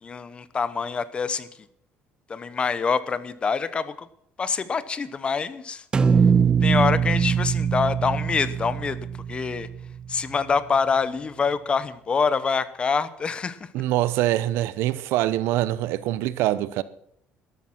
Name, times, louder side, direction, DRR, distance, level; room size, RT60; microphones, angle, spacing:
voice 1, 0.0-1.5 2.3-4.1 4.4-5.8 6.6-9.7 10.1-13.7, left 5 dB, 25° left, 0.9 m, -26 dB
sound 1, 5.9-10.1, right 6 dB, 20° right, 0.6 m, -22 dB
voice 2, 13.7-16.8, right 14 dB, 75° right, 0.8 m, -24 dB
13.0 x 12.5 x 5.9 m
cardioid pair, 145°, 4 cm